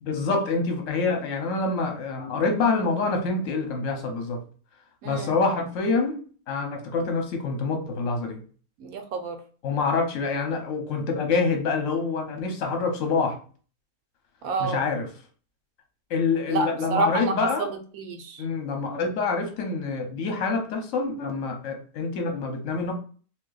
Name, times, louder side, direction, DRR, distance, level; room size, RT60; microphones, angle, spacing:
voice 1, 0.1-4.4 5.0-6.2 6.5-8.4 9.6-13.4 14.6-15.1 16.1-17.7 18.4-22.9, left 4 dB, 60° left, 4 dB, 1.1 m, -26 dB
voice 2, 5.0-5.3 8.8-9.4 14.4-14.8 16.5-18.4, right 3 dB, 70° right, 5 dB, 1.0 m, -28 dB
2.8 x 2.7 x 3.9 m, 0.41 s
omnidirectional pair, 1.7 m